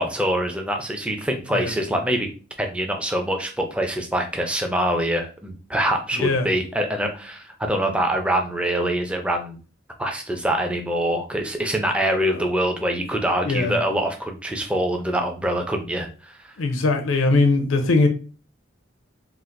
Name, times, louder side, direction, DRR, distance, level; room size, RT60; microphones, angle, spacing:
voice 1, 0.0-2.3 2.6-9.6 10.0-16.5, right 1 dB, 5° right, 0.5 m, -24 dB
voice 2, 6.1-6.5 12.2-12.4 13.4-13.8 16.6-18.1, left 3 dB, 85° left, 0.5 m, -21 dB
4.0 x 2.5 x 2.5 m
head